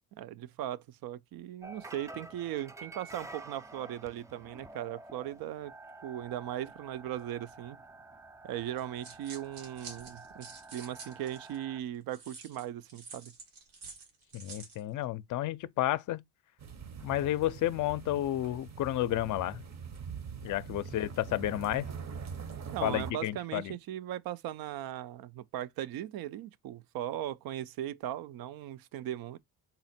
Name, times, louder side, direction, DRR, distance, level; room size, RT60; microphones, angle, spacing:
voice 1, 0.2-5.7 6.0-7.8 8.4-13.3 22.7-29.4, right 12 dB, 70° right, 0.5 m, -38 dB
sound 1, 1.6-11.8, right 2 dB, 10° right, 0.3 m, -50 dB
sound 2, 8.8-11.6 12.1-14.8, right 4 dB, 90° right, 1.5 m, -49 dB
voice 2, 14.3-16.2 17.0-19.6 20.4-21.8 22.8-23.7, left 14 dB, 55° left, 0.5 m, -31 dB
sound 3, 16.6-23.1, right 6 dB, 45° right, 0.8 m, -43 dB
3.9 x 2.1 x 4.1 m
cardioid pair, 80°, 38 cm